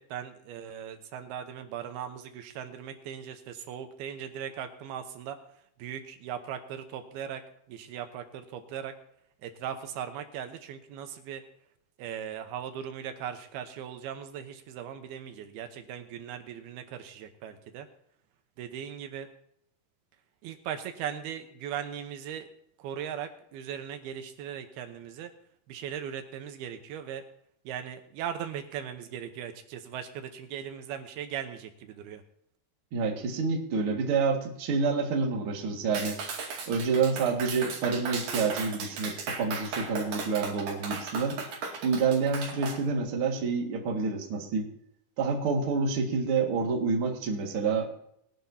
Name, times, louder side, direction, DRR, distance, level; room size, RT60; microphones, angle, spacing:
voice 1, 0.0-5.4 5.8-7.4 7.7-8.9 9.4-11.4 12.0-17.9 18.6-19.3 20.4-22.5 22.8-25.3 25.7-27.2 27.7-32.2, right 9 dB, 80° right, 7 dB, 2.9 m, -38 dB
voice 2, 32.9-36.2 36.7-41.4 41.8-44.7 45.2-48.0, right 4 dB, 45° right, 1 dB, 2.2 m, -28 dB
Clapping, 35.9-42.8, right 4 dB, 60° right, 3.9 m, -36 dB
20.5 x 11.0 x 2.8 m, 0.73 s
omnidirectional pair, 4.5 m